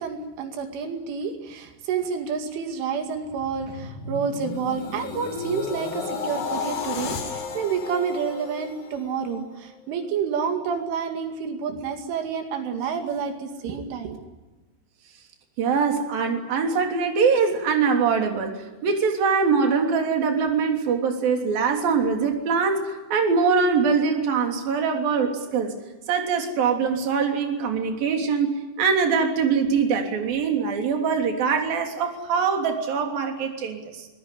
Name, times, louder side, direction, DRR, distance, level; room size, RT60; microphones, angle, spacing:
voice 1, 0.0-14.2, right 6 dB, 85° right, 5 dB, 4.8 m, -29 dB
sound 1, 3.2-9.4 9.9-10.1, left 5 dB, 55° left, 5.3 m, -33 dB
voice 2, 15.6-18.6 18.8-25.7 26.1-34.1, right 5 dB, 55° right, 4 dB, 4.7 m, -23 dB
24.0 x 20.5 x 10.0 m, 1.1 s
omnidirectional pair, 5.4 m